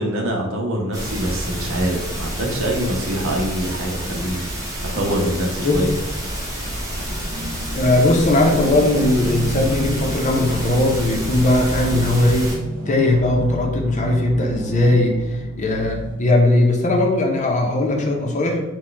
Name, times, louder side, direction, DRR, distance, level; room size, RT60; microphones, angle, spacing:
voice 1, 0.0-5.9, right 1 dB, 65° right, 0 dB, 0.9 m, -24 dB
sound 1, 0.9-12.6, equal, 15° right, 1.1 m, -29 dB
voice 2, 4.9-5.4 5.6-5.9 7.7-12.5 12.9-15.1 15.6-18.6, left 1 dB, 35° left, 1 dB, 0.7 m, -18 dB
sound 2, 6.9-16.2, equal, 85° right, 1.1 m, -31 dB
4.4 x 2.3 x 4.5 m, 1.0 s
head